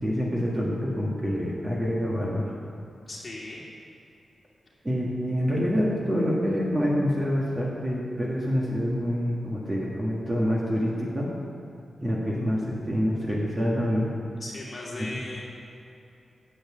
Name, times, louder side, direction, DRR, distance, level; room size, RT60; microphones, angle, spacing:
voice 1, 0.0-2.5 4.8-11.3 12.0-14.1, equal, 20° right, -5 dB, 1.5 m, -26 dB
voice 2, 3.1-3.6 14.4-15.4, left 2 dB, 30° left, -4 dB, 2.4 m, -37 dB
10.5 x 8.1 x 7.4 m, 2.8 s
wide cardioid pair, 175°, 0 cm